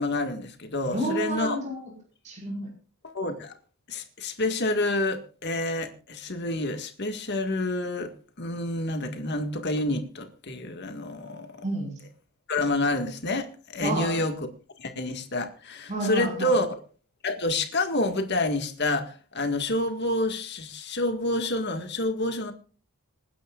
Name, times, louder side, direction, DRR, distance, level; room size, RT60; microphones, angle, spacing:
voice 1, 0.0-1.6 3.0-3.5 3.9-8.1 8.4-11.6 12.5-14.4 14.8-16.8 17.2-22.5, left 2 dB, 50° left, 1.9 m, -28 dB
voice 2, 0.9-1.9 2.2-2.7 11.6-12.1 13.8-14.2 15.9-16.6, right 1 dB, 35° right, 5.2 m, -30 dB
27.0 x 10.0 x 2.5 m
head